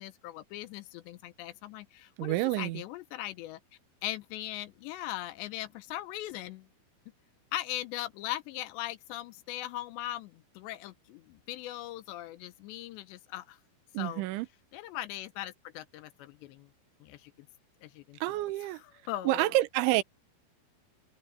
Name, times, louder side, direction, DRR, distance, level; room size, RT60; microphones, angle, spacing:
voice 1, 0.0-3.6 4.0-6.7 7.5-13.6 14.0-14.2 14.7-16.7 17.0-17.3 17.8-18.4 18.7-19.5, left 14 dB, 80° left, 2.7 m, -39 dB
voice 2, 2.2-2.8 13.9-14.5 18.2-18.8 19.3-20.0, right 17 dB, 80° right, 3.2 m, -28 dB
omnidirectional pair, 5.7 m